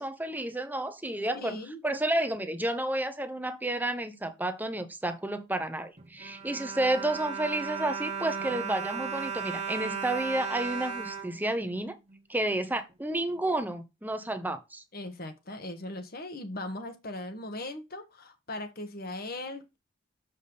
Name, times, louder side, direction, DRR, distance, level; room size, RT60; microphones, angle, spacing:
voice 1, 0.0-12.0 12.3-14.8, right 1 dB, 10° right, 0.9 m, -31 dB
voice 2, 1.3-1.8 14.9-19.8, left 1 dB, 45° left, 1.5 m, -39 dB
Bowed string instrument, 6.0-12.2 12.9-13.0 13.3-13.4, right 6 dB, 35° right, 1.4 m, -36 dB
7.2 x 5.2 x 4.0 m
head